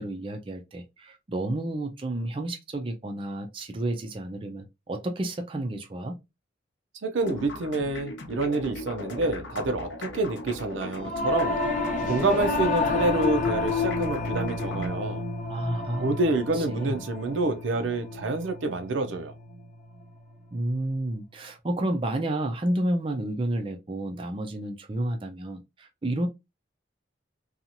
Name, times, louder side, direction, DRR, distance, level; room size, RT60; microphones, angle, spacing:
voice 1, 0.0-6.2 15.5-16.1 16.5-17.0 20.5-26.3, right 1 dB, 25° right, 0.4 m, -31 dB
voice 2, 7.0-11.6 12.0-15.2 16.0-19.3, right 2 dB, 80° right, 0.5 m, -27 dB
sound 1, 7.2-14.9, left 2 dB, 75° left, 0.8 m, -39 dB
Singing / Musical instrument, 11.0-20.5, left 3 dB, 40° left, 0.7 m, -30 dB
2.8 x 2.4 x 2.6 m
head